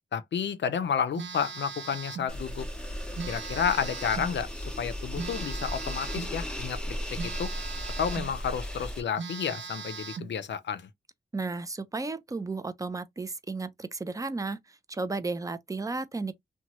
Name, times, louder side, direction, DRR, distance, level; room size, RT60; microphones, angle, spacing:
voice 1, 0.1-2.7 3.3-7.5 8.0-10.9, left 7 dB, 75° left, 0.4 m, -31 dB
Telephone, 1.1-2.3 3.1-4.3 5.2-6.3 7.2-8.3 8.8-8.9 9.2-10.3, right 5 dB, 80° right, 0.6 m, -39 dB
sound 1, 2.3-9.0, equal, 5° left, 0.7 m, -36 dB
voice 2, 11.3-16.3, right 3 dB, 20° right, 0.4 m, -34 dB
2.9 x 2.2 x 2.8 m
wide cardioid pair, 105°, 19 cm